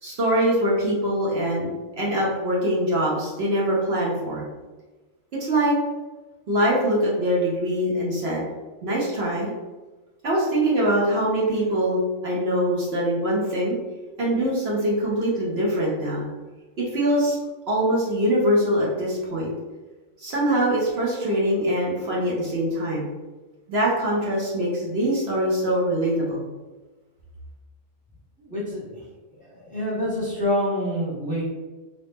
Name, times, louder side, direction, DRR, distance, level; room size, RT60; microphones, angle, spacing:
voice 1, 0.0-4.4 5.4-5.7 6.5-8.4 8.8-9.5 10.2-13.8 14.2-16.2 16.8-17.4 17.7-19.5 20.2-23.1 23.7-26.4, equal, 55° right, -5 dB, 1.0 m, -23 dB
voice 2, 28.4-29.0 29.3-31.5, equal, 5° left, -7 dB, 0.8 m, -27 dB
2.9 x 2.7 x 3.4 m, 1.2 s
omnidirectional pair, 1.4 m